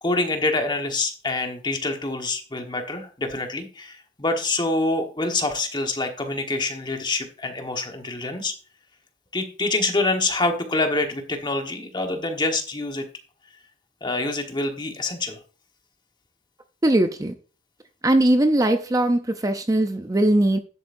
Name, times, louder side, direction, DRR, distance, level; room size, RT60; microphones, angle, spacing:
voice 1, 0.0-8.5 9.3-13.1 14.0-15.4, left 2 dB, 25° left, 4 dB, 1.4 m, -26 dB
voice 2, 16.8-17.3 18.0-20.6, right 1 dB, 20° right, 8 dB, 0.6 m, -20 dB
10.5 x 7.9 x 2.6 m, 0.36 s
head